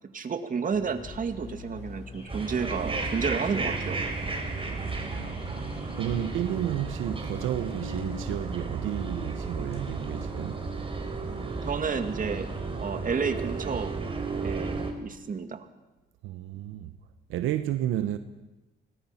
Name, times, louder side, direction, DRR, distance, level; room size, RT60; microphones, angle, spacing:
voice 1, 0.1-4.0 11.7-12.5 12.8-13.9 14.4-15.7, right 5 dB, 45° right, 2.1 m, -31 dB
Car / Alarm, 0.7-11.9, left 3 dB, 30° left, 7.0 m, -49 dB
sound 1, 2.3-14.9, right 3 dB, 25° right, 4.2 m, -33 dB
voice 2, 4.6-5.6 5.9-10.6 16.2-16.9 17.3-18.2, right 12 dB, 90° right, 0.9 m, -32 dB
24.5 x 19.0 x 5.8 m
cardioid pair, 90°, 20 cm